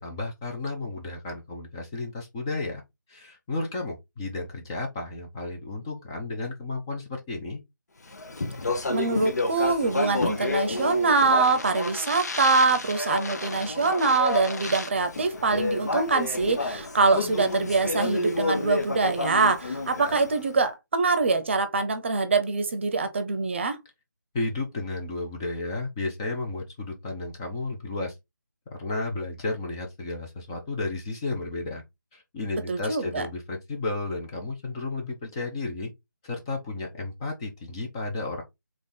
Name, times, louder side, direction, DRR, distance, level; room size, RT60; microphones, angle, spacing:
voice 1, 0.0-2.8 3.1-7.6 24.3-28.1 28.7-31.8 32.1-35.9 36.2-38.4, left 2 dB, 15° left, 0.6 m, -33 dB
Speech, 8.1-20.5, left 2 dB, 55° left, 1.1 m, -30 dB
voice 2, 8.9-23.8 32.7-33.2, right 4 dB, 35° right, 0.8 m, -24 dB
3.8 x 3.6 x 3.8 m
figure-of-eight pair, 160°, 11 cm